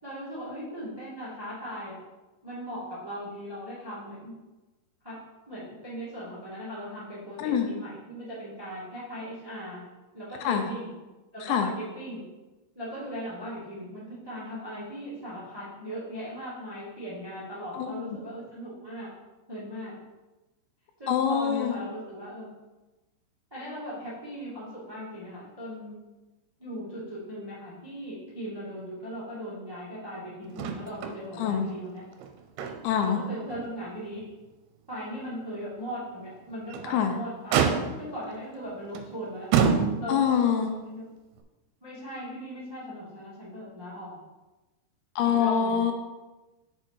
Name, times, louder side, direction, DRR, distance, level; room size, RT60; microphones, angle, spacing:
voice 1, 0.0-2.0 2.4-4.3 5.0-5.1 5.5-9.8 10.1-10.9 11.3-12.2 12.7-19.1 19.5-19.9 21.0-22.5 23.5-26.0 26.6-32.0 33.0-34.2 34.9-37.7 38.0-39.5 40.0-41.0 41.8-44.1 45.2-45.8, equal, 35° right, -8 dB, 0.3 m, -38 dB
voice 2, 17.7-18.2 21.1-21.8 31.4-31.7 32.8-33.2 36.9-37.1 40.1-40.7 45.2-45.9, left 8 dB, 80° left, 5 dB, 2.8 m, -25 dB
Motor vehicle (road), 30.6-31.2 31.5-31.6 32.1-33.1 33.5-33.6 34.2-34.3 36.5-36.9 37.5-38.2 38.9-39.1 39.5-40.3 41.4-41.5, right 7 dB, 80° right, 2.7 m, -26 dB
6.7 x 6.5 x 4.5 m, 1.1 s
omnidirectional pair, 5.4 m